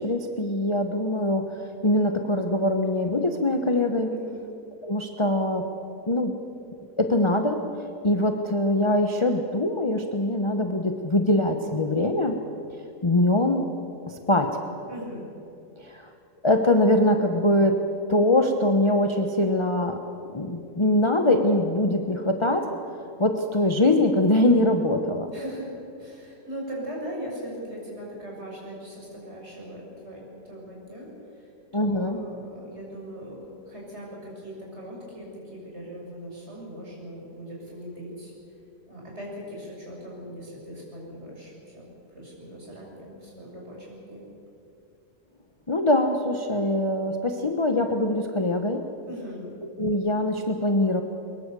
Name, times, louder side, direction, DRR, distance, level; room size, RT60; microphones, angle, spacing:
voice 1, 0.0-4.1 4.8-5.7 6.1-6.3 7.0-7.6 8.0-12.4 13.0-13.7 14.1-14.5 15.8-16.1 16.4-17.8 18.1-20.0 20.3-22.7 23.2-25.3 31.7-32.2 45.7-48.8 49.8-51.0, left 1 dB, 20° left, 5 dB, 0.8 m, -23 dB
voice 2, 4.1-4.4 14.9-15.3 22.2-22.4 25.3-25.7 26.0-38.3 38.9-44.2 49.1-49.6, equal, 35° right, -3 dB, 7.0 m, -40 dB
23.0 x 21.0 x 6.9 m, 2.6 s
omnidirectional pair, 1.9 m